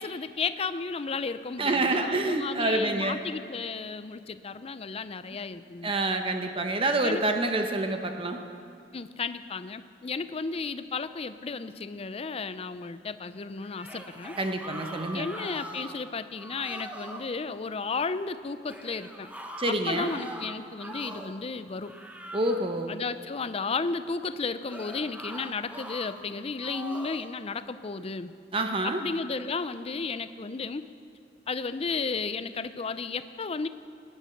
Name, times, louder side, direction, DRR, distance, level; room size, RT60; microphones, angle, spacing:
voice 1, 0.0-5.9 7.0-7.2 8.9-14.4 15.1-19.3 19.7-21.9 22.9-28.3 28.8-30.9 31.5-33.7, left 4 dB, 35° left, 13 dB, 0.5 m, -33 dB
voice 2, 1.6-3.2 5.8-8.4 14.4-15.3 19.6-20.1 22.3-23.0 28.5-29.0, right 2 dB, 30° right, 5 dB, 0.9 m, -27 dB
sound 1, 13.6-16.0 16.4-17.3 18.7-21.4 21.8-22.8 24.7-26.1 26.6-27.3, right 1 dB, 10° right, 1.0 m, -42 dB
19.0 x 9.9 x 5.9 m, 2.4 s
head